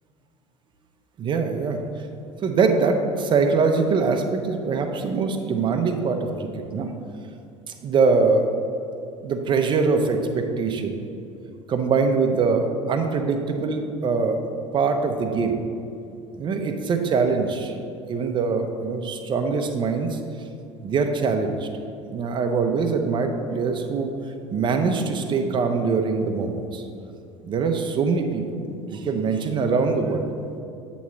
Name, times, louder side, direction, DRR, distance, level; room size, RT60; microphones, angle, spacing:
voice 1, 1.2-1.8 2.4-6.9 7.8-8.5 9.2-11.0 11.7-14.4 14.7-15.6 16.4-17.8 18.1-20.2 20.8-21.7 22.1-24.1 24.5-26.8 27.4-28.4 28.9-30.3, right 4 dB, 30° right, 5 dB, 0.7 m, -23 dB
8.1 x 3.1 x 6.1 m, 2.5 s
figure-of-eight pair, 65°, 16 cm